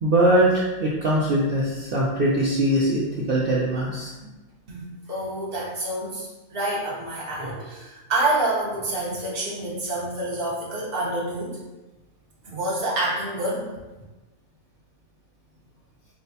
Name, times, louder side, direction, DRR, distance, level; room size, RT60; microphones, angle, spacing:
voice 1, 0.0-3.0 3.3-4.1, right 1 dB, 65° right, -5 dB, 0.5 m, -21 dB
voice 2, 4.7-11.6 12.4-13.7, right 2 dB, 40° right, -5 dB, 1.1 m, -27 dB
6.2 x 2.2 x 2.7 m, 1.1 s
omnidirectional pair, 1.6 m